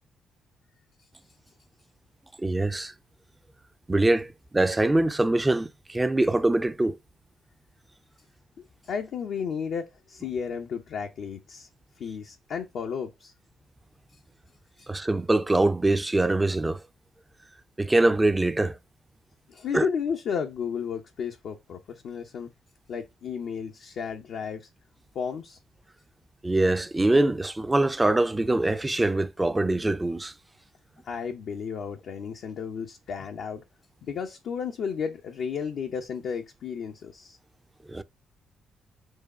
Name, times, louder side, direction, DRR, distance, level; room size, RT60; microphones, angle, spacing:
voice 1, 2.4-2.9 3.9-7.0 14.9-16.8 17.8-18.8 19.7-19.9 26.4-30.3 37.9-38.0, right 2 dB, 20° right, 0.6 m, -23 dB
voice 2, 8.8-11.7 12.0-13.3 14.8-14.9 19.5-22.5 22.9-24.7 25.1-25.6 31.0-33.6 34.0-37.4, left 6 dB, 60° left, 0.6 m, -33 dB
4.7 x 2.3 x 4.2 m
hypercardioid pair, 45°, 0 cm